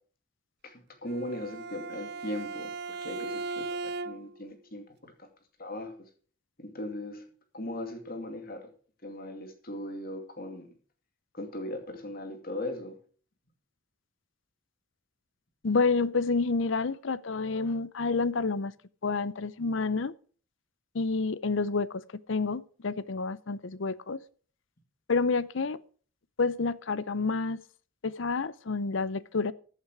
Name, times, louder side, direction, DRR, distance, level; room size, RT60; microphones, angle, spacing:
voice 1, 1.0-5.3 5.6-5.9 6.6-7.3 7.5-8.6 9.0-10.7 11.3-13.0, left 1 dB, 45° left, 2.4 m, -38 dB
Bowed string instrument, 1.1-4.5, right 3 dB, 50° right, 0.6 m, -37 dB
voice 2, 15.6-18.7 19.0-20.1 20.9-22.0 22.3-24.2 25.1-25.8 26.4-27.6 28.0-29.5, left 4 dB, 60° left, 0.6 m, -29 dB
15.0 x 8.2 x 4.7 m
head